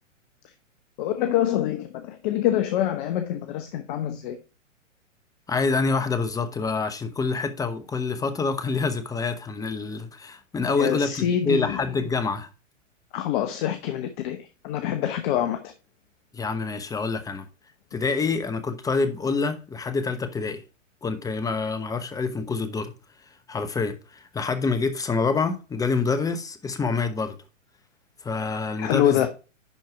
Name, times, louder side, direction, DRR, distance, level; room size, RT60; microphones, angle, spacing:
voice 1, 1.0-4.4 10.6-11.8 13.1-15.7 28.8-29.3, left 11 dB, 40° left, 1.0 m, -26 dB
voice 2, 5.5-12.5 16.3-17.5 17.9-20.6 21.0-22.9 23.5-27.4 28.2-29.3, left 4 dB, 10° left, 0.9 m, -26 dB
11.0 x 4.5 x 4.6 m
figure-of-eight pair, 110°, 38 cm